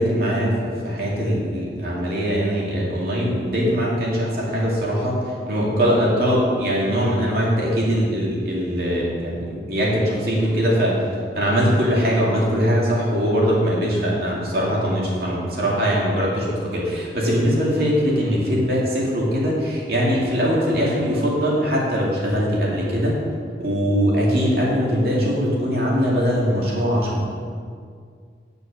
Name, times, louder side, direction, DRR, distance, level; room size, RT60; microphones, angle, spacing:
voice 1, 0.0-11.0 11.3-23.2 23.6-27.4, equal, 55° right, -4 dB, 2.6 m, -21 dB
9.0 x 6.9 x 6.6 m, 2.1 s
head